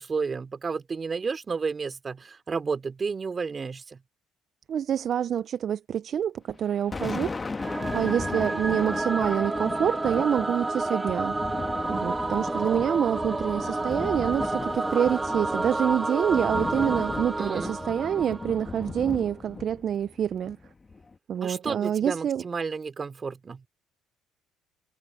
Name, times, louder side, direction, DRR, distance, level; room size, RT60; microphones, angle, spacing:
voice 1, 0.0-4.0 17.4-17.8 21.4-23.6, right 5 dB, 30° right, 3.2 m, -31 dB
voice 2, 4.7-7.5 7.9-11.3 11.9-20.6 21.3-22.4, right 9 dB, 50° right, 0.5 m, -27 dB
Thunder, 6.5-21.1, left 4 dB, 25° left, 1.5 m, -36 dB
Singing / Musical instrument, 7.6-18.9, right 2 dB, 15° right, 2.8 m, -30 dB
cardioid pair, 90°, 0 cm